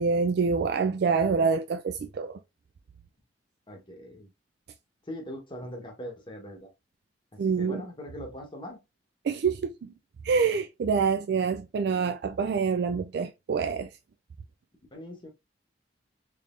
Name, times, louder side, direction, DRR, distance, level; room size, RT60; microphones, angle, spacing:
voice 1, 0.0-2.4 7.4-7.8 9.2-9.9 10.2-13.9, right 5 dB, 65° right, 0.3 m, -26 dB
voice 2, 3.7-4.3 5.1-6.7 7.6-8.8 14.9-15.3, left 1 dB, 30° left, 1.0 m, -41 dB
3.6 x 3.3 x 2.4 m
head